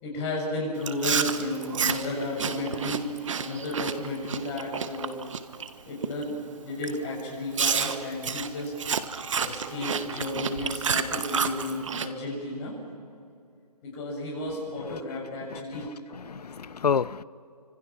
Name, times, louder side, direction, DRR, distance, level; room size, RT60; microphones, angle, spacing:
voice 1, 0.0-3.1 3.4-5.2 5.9-8.7 9.4-12.7 13.8-15.9, left 1 dB, 20° left, -2 dB, 7.0 m, -33 dB
Chewing mastication, 0.8-5.7 6.0-6.4 6.8-7.0 7.6-12.1, right 6 dB, 50° right, 1.4 m, -30 dB
voice 2, 15.5-15.9 16.1-17.2, left 6 dB, 70° left, 20 dB, 0.7 m, -29 dB
29.5 x 26.0 x 6.1 m, 2.5 s
hypercardioid pair, 160°, 21 cm